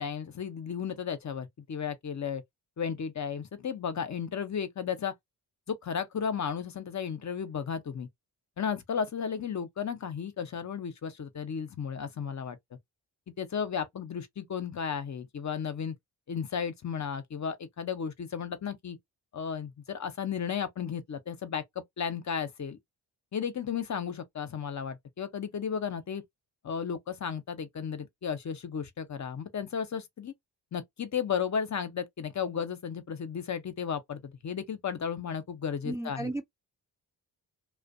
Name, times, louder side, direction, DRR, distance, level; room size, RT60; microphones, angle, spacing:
voice 1, 0.0-2.4 2.8-5.1 5.7-8.1 8.6-12.6 13.4-15.9 16.3-19.0 19.3-21.6 22.0-22.8 23.3-26.2 26.6-30.3 30.7-36.3, left 7 dB, 40° left, 0.6 m, -34 dB
voice 2, 35.8-36.5, right 1 dB, 5° right, 0.4 m, -34 dB
2.4 x 2.1 x 2.5 m
hypercardioid pair, 40°, 48 cm